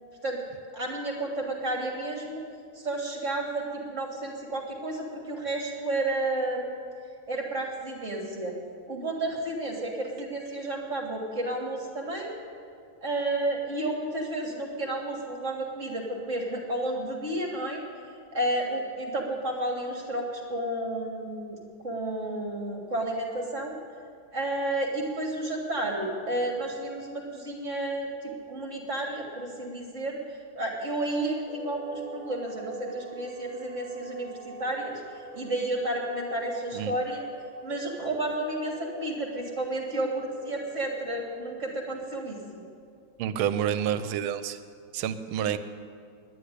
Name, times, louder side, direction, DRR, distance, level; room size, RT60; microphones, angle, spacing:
voice 1, 0.7-2.4 2.8-6.9 7.3-8.5 8.9-12.3 13.0-17.8 18.3-21.6 21.8-23.8 24.3-30.2 30.6-35.0 35.3-37.3 37.6-42.6, right 1 dB, 35° right, 0 dB, 1.8 m, -31 dB
sound 1, 31.5-41.3, right 3 dB, 10° right, 0.4 m, -43 dB
voice 2, 43.2-44.6 44.9-45.6, right 9 dB, 80° right, 12 dB, 1.5 m, -28 dB
10.5 x 10.0 x 9.8 m, 2.3 s
omnidirectional pair, 2.3 m